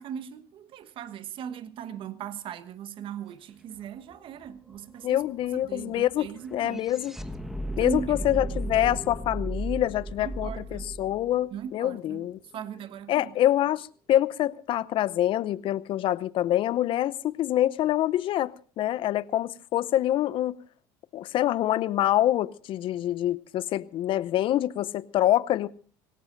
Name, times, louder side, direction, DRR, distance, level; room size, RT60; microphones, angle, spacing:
voice 1, 0.0-5.2 5.6-6.8 7.8-8.3 10.2-10.9 11.5-13.3, right 8 dB, 50° right, 1.3 m, -38 dB
sound 1, 3.8-12.3, right 1 dB, 5° right, 1.3 m, -36 dB
voice 2, 5.0-7.1 7.8-12.4 13.1-18.5 18.8-20.6 21.1-25.7, left 13 dB, 50° left, 0.7 m, -26 dB
25.0 x 18.0 x 2.6 m
hypercardioid pair, 80°, 11 cm